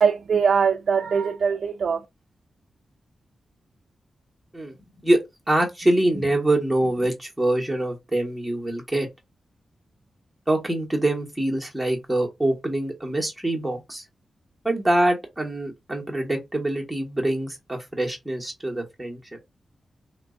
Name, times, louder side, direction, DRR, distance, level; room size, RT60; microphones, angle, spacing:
voice 1, 0.0-2.0, right 6 dB, 55° right, 0.3 m, -21 dB
voice 2, 5.5-9.1 10.5-14.0 14.6-19.2, right 1 dB, 5° right, 1.0 m, -24 dB
3.1 x 2.4 x 3.6 m
wide cardioid pair, 175°, 0 cm